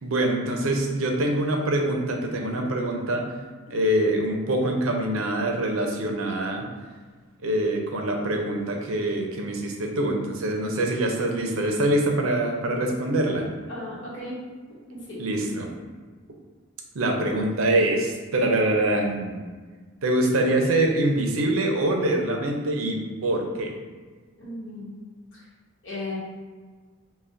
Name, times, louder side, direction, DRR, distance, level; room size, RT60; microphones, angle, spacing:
voice 1, 0.0-3.2 3.7-6.6 7.4-13.5 15.2-15.7 16.9-19.4 20.0-23.7, right 1 dB, 80° right, 2 dB, 0.6 m, -24 dB
voice 2, 13.7-14.4 14.9-15.2 24.4-24.9 25.3-25.4 25.8-26.2, left 2 dB, 65° left, -7 dB, 1.3 m, -35 dB
5.5 x 2.3 x 2.6 m, 1.4 s
head